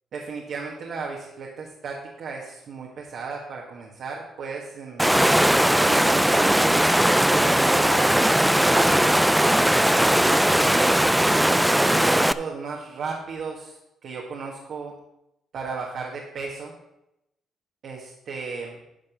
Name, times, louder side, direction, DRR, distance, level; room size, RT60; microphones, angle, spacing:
voice 1, 0.1-5.1 5.9-8.9 10.2-11.0 11.5-13.8 14.0-14.9 15.5-16.7 17.8-18.8, right 4 dB, 65° right, -1 dB, 1.6 m, -34 dB
Water, 5.0-12.3, right 1 dB, 5° right, 0.4 m, -19 dB
10.5 x 5.4 x 6.1 m, 0.86 s
cardioid pair, 90°, 0 cm